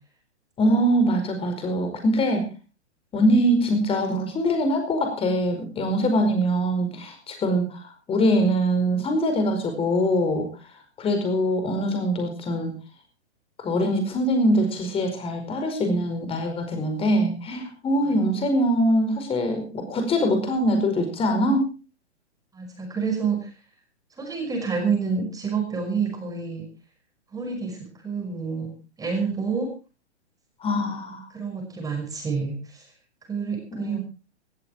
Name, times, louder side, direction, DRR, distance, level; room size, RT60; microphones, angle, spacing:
voice 1, 0.6-2.4 3.1-10.5 11.0-12.7 13.6-21.7 30.6-31.3 33.7-34.0, equal, 15° left, 6 dB, 4.9 m, -23 dB
voice 2, 22.5-23.5 24.2-26.6 27.3-28.7 29.0-29.7 31.3-32.9 33.3-34.0, right 5 dB, 10° right, 2 dB, 5.7 m, -28 dB
18.5 x 14.0 x 4.3 m, 0.34 s
figure-of-eight pair, 125°, 34 cm